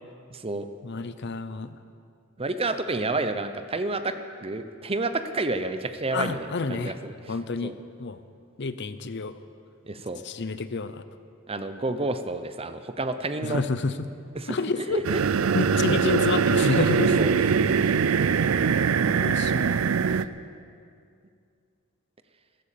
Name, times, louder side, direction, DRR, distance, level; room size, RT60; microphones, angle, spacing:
voice 1, 0.3-0.7 2.4-7.1 7.6-7.7 9.8-10.2 11.5-13.6 14.3-15.2 17.2-17.3, right 2 dB, 30° right, 10 dB, 0.8 m, -29 dB
voice 2, 0.8-1.8 6.1-6.9 7.3-7.7 8.0-8.2 8.6-9.4 10.2-11.0 13.4-14.1 14.5-15.0 15.5-17.2 19.1-19.9, left 4 dB, 55° left, 12 dB, 0.7 m, -29 dB
sound 1, 15.0-20.2, right 6 dB, 75° right, 0.5 m, -22 dB
14.5 x 13.0 x 6.8 m, 2.3 s
head